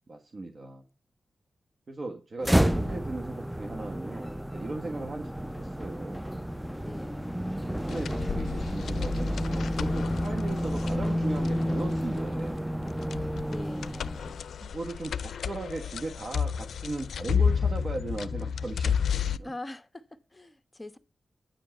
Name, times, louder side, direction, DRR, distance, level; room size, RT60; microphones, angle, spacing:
voice 1, 0.1-0.8 1.9-6.2 7.0-7.1 7.8-12.6 13.7-13.8 14.6-19.5, right 2 dB, 55° right, 1.4 m, -38 dB
sound 1, 2.4-14.4, equal, 5° right, 0.5 m, -30 dB
Wind instrument woodwind instrument, 7.0-11.8, left 5 dB, 60° left, 0.9 m, -55 dB
sound 2, 7.9-19.4, left 7 dB, 90° left, 0.4 m, -32 dB
voice 2, 13.5-14.1 19.4-21.0, left 2 dB, 20° left, 1.2 m, -43 dB
9.7 x 5.1 x 7.7 m
cardioid pair, 55°, 0 cm